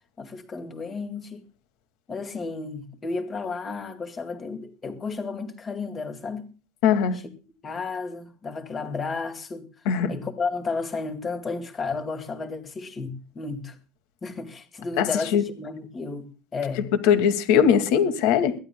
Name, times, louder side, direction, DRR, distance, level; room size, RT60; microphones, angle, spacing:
voice 1, 0.2-1.4 2.1-6.5 7.1-7.2 7.6-9.7 10.1-13.8 14.2-16.9, left 4 dB, 20° left, 2.1 m, -32 dB
voice 2, 6.8-7.2 9.9-10.1 15.0-15.4 17.1-18.5, left 8 dB, 65° left, 2.2 m, -20 dB
22.0 x 15.5 x 2.3 m
cardioid pair, 155°, 0 cm